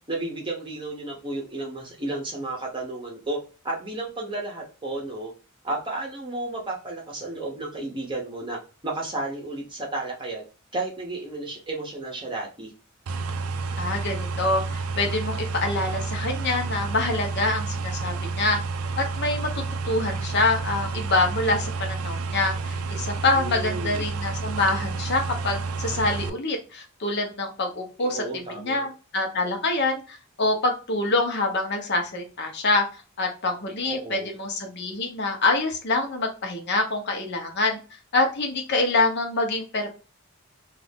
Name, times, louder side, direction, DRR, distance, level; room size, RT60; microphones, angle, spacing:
voice 1, 0.0-3.4 3.6-5.3 5.6-8.6 8.8-10.4 10.7-12.7 23.2-24.1 28.0-28.9 33.8-34.3, right 2 dB, 25° right, -2 dB, 0.8 m, -32 dB
sound 1, 13.1-26.3, right 4 dB, 85° right, 0.4 m, -30 dB
voice 2, 13.8-18.6 19.0-28.2 28.6-32.8 33.2-37.8 38.1-39.9, left 2 dB, 55° left, 3 dB, 0.8 m, -26 dB
2.6 x 2.4 x 3.4 m, 0.34 s
head